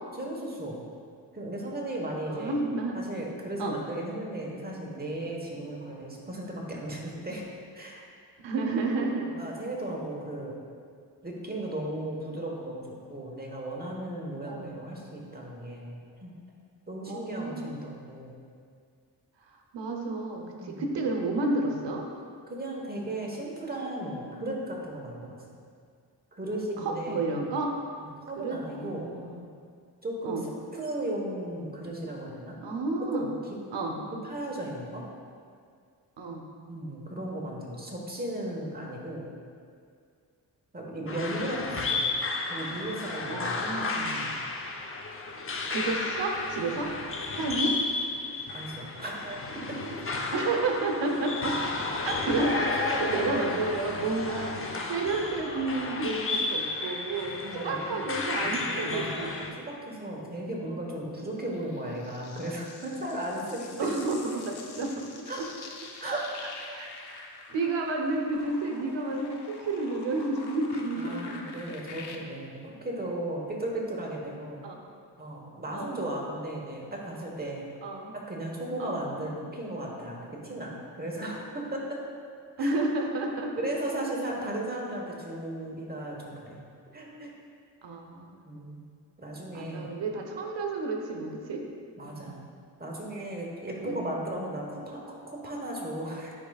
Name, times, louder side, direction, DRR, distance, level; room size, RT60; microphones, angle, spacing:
voice 1, 0.1-0.8 1.3-2.6 2.9-7.4 7.7-8.1 9.0-9.1 9.3-10.6 11.2-16.3 16.9-18.4 20.6-20.8 22.5-25.6 26.3-27.2 28.0-29.1 30.0-30.4 30.7-32.6 33.1-33.3 34.1-35.0 36.7-39.3 40.7-42.1 42.4-43.8 44.0-44.3 48.5-49.4 49.7-49.8 52.4-53.5 57.4-58.0 58.4-63.9 65.3-65.4 66.0-66.2 71.0-74.6 75.2-77.6 78.1-82.0 82.6-82.7 83.6-86.6 86.9-87.3 88.4-88.8 89.2-89.9 92.0-92.4 92.8-96.3, right 1 dB, 20° right, -2 dB, 1.2 m, -36 dB
voice 2, 2.3-3.0 3.6-3.8 8.4-9.2 14.5-14.7 17.1-17.8 19.5-22.0 26.8-27.8 28.4-29.4 30.2-30.4 32.6-33.3 33.7-33.9 36.2-36.4 43.3-44.1 45.7-46.9 47.3-47.8 50.3-51.6 52.0-59.3 60.6-60.8 63.8-65.0 65.4-65.5 66.0-67.2 67.5-71.4 74.6-74.8 75.7-76.0 77.8-78.1 78.8-79.0 82.6-83.6 87.8-88.4 89.5-91.6 92.1-92.3 93.8-94.0, right 2 dB, 85° right, 1 dB, 0.9 m, -31 dB
sound 1, 41.1-59.5, left 3 dB, 30° left, 0.6 m, -33 dB
sound 2, 61.5-72.2, left 4 dB, 65° left, 0.7 m, -46 dB
10.0 x 4.8 x 2.4 m, 2.2 s
cardioid pair, 85°, 42 cm